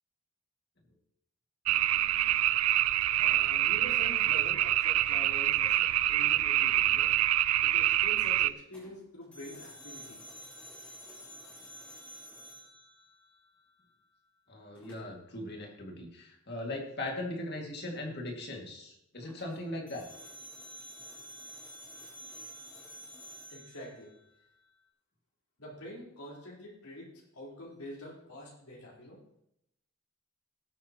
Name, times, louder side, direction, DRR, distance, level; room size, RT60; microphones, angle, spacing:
sound 1, 1.7-8.5, right 14 dB, 80° right, 0.4 m, -26 dB
voice 1, 3.2-7.1 7.6-10.2 23.5-24.1 25.6-29.2, equal, 85° left, -4 dB, 4.2 m, -46 dB
sound 2, 8.7-13.7 14.7-15.3 19.2-24.7, equal, 5° left, 3.8 m, -50 dB
voice 2, 14.5-20.1, left 1 dB, 45° left, 0 dB, 2.2 m, -39 dB
19.0 x 8.9 x 3.0 m, 0.78 s
head